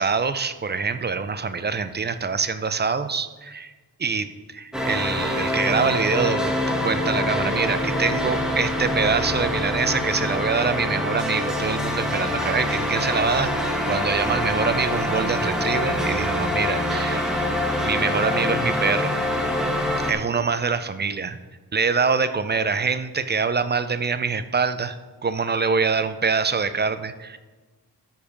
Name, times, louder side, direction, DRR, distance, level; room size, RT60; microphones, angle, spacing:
voice 1, 0.0-3.7 4.0-6.6 6.8-17.4 17.8-19.1 20.0-21.4 21.7-25.0 25.2-27.4, right 5 dB, 30° right, 12 dB, 0.5 m, -25 dB
sound 1, 4.7-20.1, left 1 dB, ahead, 1.3 m, -25 dB
13.0 x 5.1 x 5.2 m, 1.3 s
wide cardioid pair, 110°, 38 cm